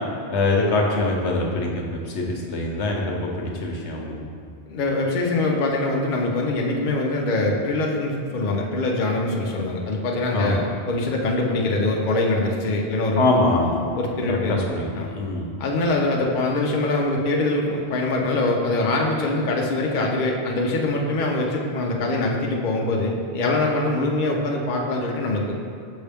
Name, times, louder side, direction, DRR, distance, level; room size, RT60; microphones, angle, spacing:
voice 1, 0.3-4.2 10.3-10.6 13.2-13.8 14.3-15.5, left 2 dB, 75° left, 0 dB, 1.1 m, -23 dB
voice 2, 4.7-13.2 14.0-14.6 14.9-15.1 15.6-25.6, left 2 dB, 50° left, -1 dB, 0.7 m, -23 dB
6.5 x 5.5 x 3.4 m, 2.2 s
omnidirectional pair, 1.2 m